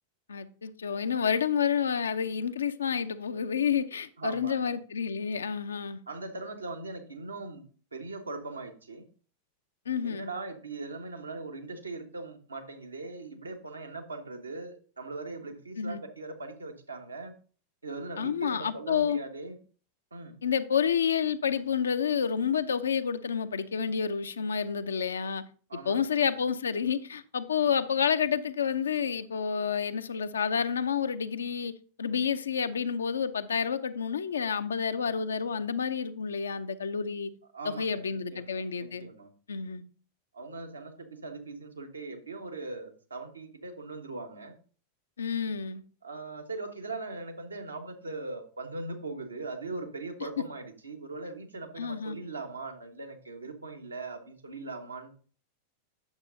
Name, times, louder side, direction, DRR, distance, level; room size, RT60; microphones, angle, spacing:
voice 1, 0.3-6.0 9.9-10.3 15.8-16.0 18.2-19.2 20.4-25.4 25.8-31.7 32.0-37.3 37.6-39.1 39.5-39.8 45.2-45.8 51.8-52.2, left 7 dB, 70° left, 0.5 m, -29 dB
voice 2, 4.2-4.7 6.1-7.6 7.9-9.1 10.0-17.3 17.8-19.6 20.1-20.4 25.7-26.2 27.6-27.7 37.5-39.3 40.3-44.6 46.0-55.1, right 3 dB, 80° right, 1.2 m, -40 dB
8.8 x 7.3 x 2.6 m
figure-of-eight pair, 90°, 0 cm